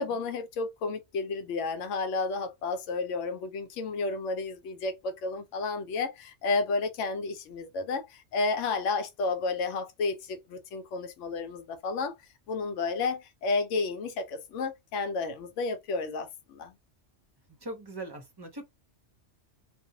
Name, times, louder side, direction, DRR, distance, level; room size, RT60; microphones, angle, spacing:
voice 1, 0.0-12.1 12.5-16.7, left 3 dB, 85° left, 0.9 m, -31 dB
voice 2, 17.6-18.6, right 1 dB, 30° right, 0.5 m, -40 dB
2.5 x 2.0 x 2.7 m
omnidirectional pair, 1.2 m